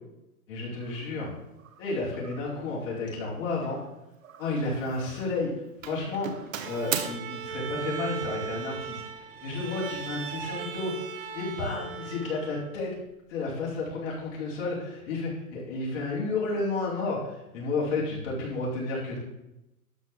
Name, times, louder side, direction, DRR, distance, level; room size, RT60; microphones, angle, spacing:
voice 1, 0.5-1.3 1.8-3.8 4.4-5.5 5.8-9.0 9.4-12.9 13.3-19.2, left 3 dB, 35° left, -6 dB, 4.8 m, -31 dB
Doorbell, 0.8-1.0 1.6-1.9 2.2-2.6 3.6-4.7 4.9-5.4 5.8-7.1, right 8 dB, 60° right, 1.3 m, -37 dB
Bowed string instrument, 6.6-12.9, right 7 dB, 40° right, 0.8 m, -38 dB
12.5 x 4.8 x 7.3 m, 0.92 s
hypercardioid pair, 165°, 45 cm